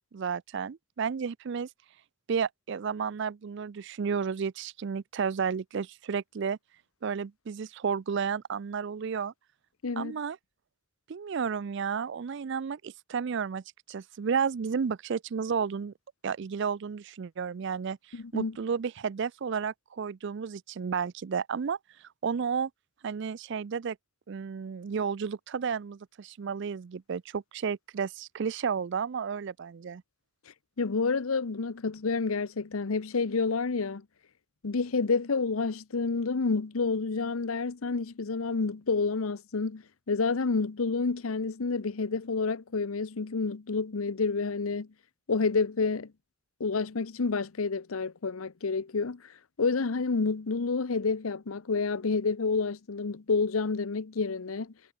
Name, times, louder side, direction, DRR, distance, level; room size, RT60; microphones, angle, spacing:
voice 1, 0.1-1.7 2.3-6.6 7.0-9.3 10.0-10.4 11.1-13.6 13.9-15.9 16.2-21.8 22.2-22.7 23.0-24.0 24.3-30.0, right 6 dB, 55° right, 0.4 m, -32 dB
voice 2, 9.8-10.2 18.1-18.6 30.8-34.0 34.6-44.9 45.3-46.1 46.6-54.7, left 4 dB, 85° left, 0.8 m, -29 dB
head